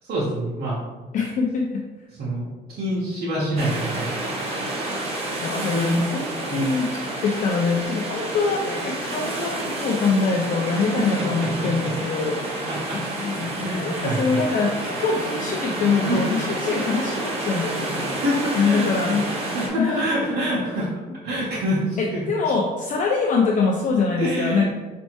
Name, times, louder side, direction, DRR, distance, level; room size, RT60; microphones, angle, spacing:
voice 1, 0.0-0.8 2.2-4.2 5.7-6.0 6.5-6.7 10.8-11.0 12.7-13.0 13.6-14.4 16.0-16.2 18.1-19.1 19.5-20.9 21.2-22.2 24.2-24.7, equal, 65° right, -9 dB, 1.4 m, -26 dB
voice 2, 1.1-1.8 5.4-18.1 18.6-20.1 22.0-24.7, left 4 dB, 50° left, 0 dB, 0.6 m, -24 dB
sound 1, 3.6-19.7, right 1 dB, 35° right, 1.3 m, -29 dB
5.1 x 3.3 x 3.0 m, 1.2 s
cardioid pair, 110°, 17 cm